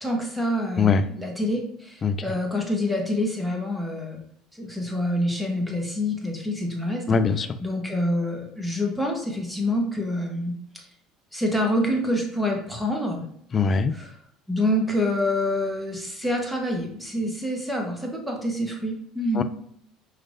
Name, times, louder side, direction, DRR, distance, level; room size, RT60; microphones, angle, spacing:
voice 1, 0.0-4.2 4.6-7.2 7.6-10.8 11.3-13.2 13.9-14.1 14.5-19.4, left 1 dB, ahead, 1 dB, 1.2 m, -27 dB
voice 2, 7.1-7.6 13.5-13.9 19.4-19.5, left 5 dB, 35° left, 11 dB, 0.4 m, -21 dB
4.9 x 3.1 x 2.7 m, 0.68 s
hypercardioid pair, 70°, 0 cm